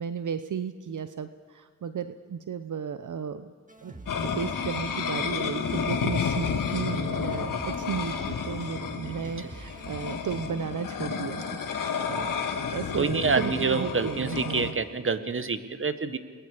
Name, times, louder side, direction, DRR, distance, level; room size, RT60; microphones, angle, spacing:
voice 1, 0.0-3.5 3.8-14.8, right 7 dB, 70° right, 10 dB, 0.8 m, -34 dB
sound 1, 3.7-10.5, right 2 dB, 25° right, 2.1 m, -45 dB
sound 2, 4.1-14.7, left 6 dB, 85° left, 1.7 m, -31 dB
voice 2, 12.9-16.2, right 4 dB, 40° right, 11 dB, 1.4 m, -27 dB
28.5 x 21.0 x 5.1 m, 1.6 s
cardioid pair, 55°, 32 cm